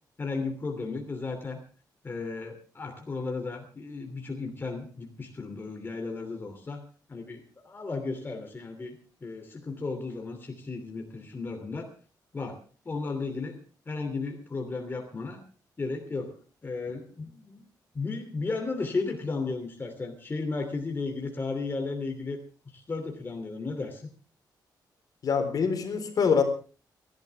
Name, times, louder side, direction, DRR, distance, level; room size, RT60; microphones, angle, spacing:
voice 1, 0.2-1.6 2.0-6.8 7.1-8.9 9.2-11.9 12.3-15.4 15.8-17.7 17.9-22.4 22.7-24.1, left 3 dB, 30° left, 3 dB, 2.9 m, -34 dB
voice 2, 25.2-26.4, left 6 dB, 55° left, 6 dB, 4.1 m, -24 dB
30.0 x 12.0 x 3.5 m, 0.37 s
cardioid pair, 115°, 7 cm